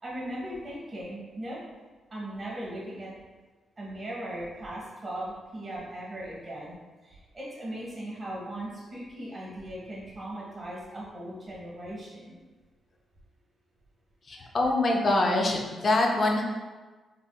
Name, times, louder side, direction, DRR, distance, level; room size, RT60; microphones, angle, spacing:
voice 1, 0.0-1.6 2.1-3.1 3.8-6.7 7.0-12.3, right 1 dB, 25° right, -6 dB, 1.2 m, -38 dB
voice 2, 14.3-16.4, left 2 dB, 40° left, 1 dB, 0.4 m, -24 dB
3.5 x 2.6 x 2.2 m, 1.3 s
cardioid pair, 135°, 0 cm